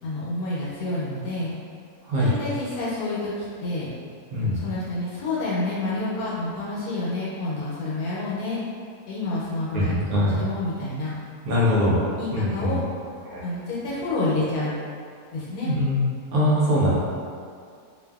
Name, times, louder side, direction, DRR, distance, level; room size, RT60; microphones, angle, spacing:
voice 1, 0.0-1.5 2.2-3.9 4.4-8.6 9.1-11.1 12.2-12.8 13.4-14.7 15.3-15.7, left 2 dB, 75° left, -8 dB, 1.1 m, -29 dB
voice 2, 9.7-10.4 11.4-12.0 12.3-12.8 13.2-13.4 15.6-16.0 16.3-16.9, left 1 dB, 75° right, -7 dB, 1.0 m, -22 dB
2.5 x 2.5 x 2.3 m, 2.2 s
omnidirectional pair, 1.6 m